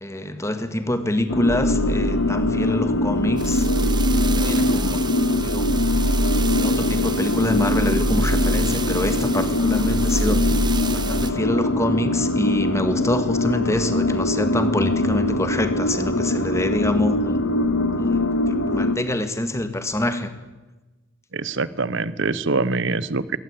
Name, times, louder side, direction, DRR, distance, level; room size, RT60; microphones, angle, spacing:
voice 1, 0.0-3.9 4.4-5.0 5.4-5.7 6.5-17.4 18.0-20.3, left 1 dB, 15° left, 9 dB, 1.7 m, -26 dB
sound 1, 1.3-19.0, left 2 dB, 70° left, 1.7 m, -22 dB
sound 2, 1.5-11.3, right 1 dB, 20° right, 1.1 m, -26 dB
voice 2, 21.3-23.4, right 3 dB, 60° right, 18 dB, 1.0 m, -24 dB
21.5 x 18.0 x 8.8 m, 1.2 s
head